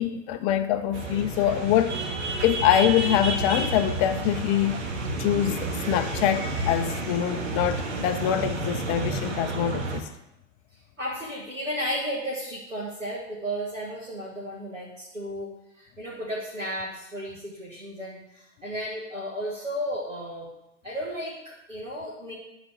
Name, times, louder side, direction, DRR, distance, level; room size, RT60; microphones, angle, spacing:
voice 1, 0.0-2.0 2.4-4.8 5.2-10.1, left 11 dB, 30° left, 0.4 m, -24 dB
sound 1, 0.9-10.0, right 2 dB, 60° right, 1.5 m, -30 dB
voice 2, 11.0-15.5 15.8-20.5 20.8-22.3, equal, 90° right, 2.0 m, -33 dB
11.0 x 4.0 x 6.3 m
figure-of-eight pair, 90°, 37 cm